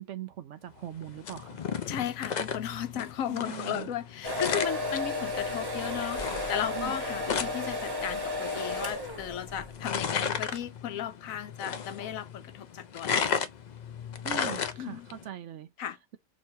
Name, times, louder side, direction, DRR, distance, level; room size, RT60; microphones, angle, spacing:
voice 1, 0.0-1.6 2.9-3.0 3.3-3.9 6.7-6.9 14.2-15.7, right 10 dB, 65° right, 0.8 m, -41 dB
sound 1, 0.8-15.2, left 6 dB, 90° left, 0.3 m, -35 dB
voice 2, 1.9-6.2 6.5-13.3 14.8-15.1 15.8-16.0, left 10 dB, 75° left, 1.1 m, -35 dB
sound 2, 4.2-9.8, left 2 dB, 20° right, 0.8 m, -33 dB
4.5 x 3.0 x 2.6 m
omnidirectional pair, 1.5 m